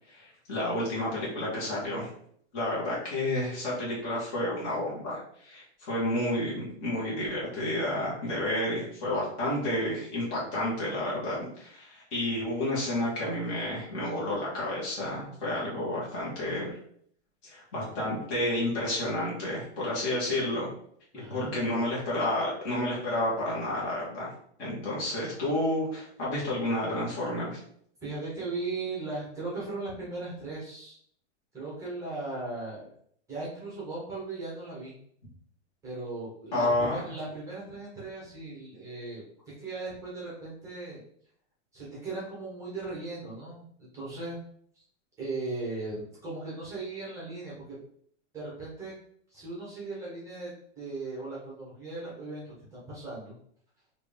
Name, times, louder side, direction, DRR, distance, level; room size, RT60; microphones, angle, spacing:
voice 1, 0.0-2.1 2.5-16.8 17.4-20.7 21.3-24.3 24.6-27.6 36.5-37.1, left 1 dB, 25° left, -6 dB, 1.5 m, -30 dB
voice 2, 21.1-21.5 28.0-31.0 31.5-32.9 33.3-34.9 35.8-39.2 39.6-41.0 41.7-44.4 45.2-47.8 48.3-48.9 49.3-50.5 50.8-53.3, right 3 dB, 10° right, -7 dB, 1.0 m, -37 dB
4.4 x 2.7 x 3.4 m, 0.64 s
supercardioid pair, 175°, 34 cm